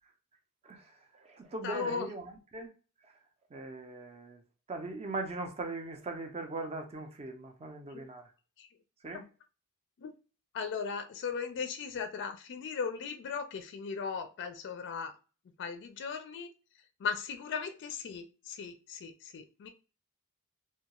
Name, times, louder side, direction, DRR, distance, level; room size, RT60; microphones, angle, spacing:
voice 1, 0.6-2.7 3.0-3.2 3.5-4.4 4.7-8.3 9.0-9.2, right 2 dB, 30° right, 0.5 m, -40 dB
voice 2, 1.6-2.1 7.9-8.1 8.6-8.7 10.0-10.1 10.5-15.1 15.6-16.5 17.0-19.7, left 5 dB, 55° left, 0.4 m, -37 dB
2.3 x 2.2 x 2.8 m
head